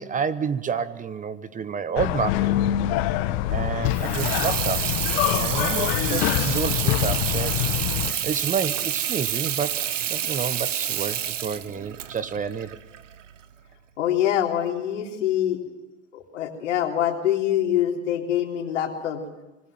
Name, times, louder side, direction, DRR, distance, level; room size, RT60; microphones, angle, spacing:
voice 1, 0.0-2.6 3.5-5.0 5.3-7.7 8.0-12.7, right 6 dB, 20° right, 15 dB, 1.0 m, -29 dB
sound 1, 2.0-8.1, left 14 dB, 55° left, 1.5 m, -25 dB
Water tap faucet / Sink (filling or washing), 3.9-13.4, right 10 dB, 85° right, 1.1 m, -29 dB
voice 2, 14.0-15.6 16.1-19.2, left 11 dB, 80° left, 2 dB, 3.5 m, -24 dB
25.5 x 20.5 x 7.6 m, 1.1 s
hypercardioid pair, 95°, 36 cm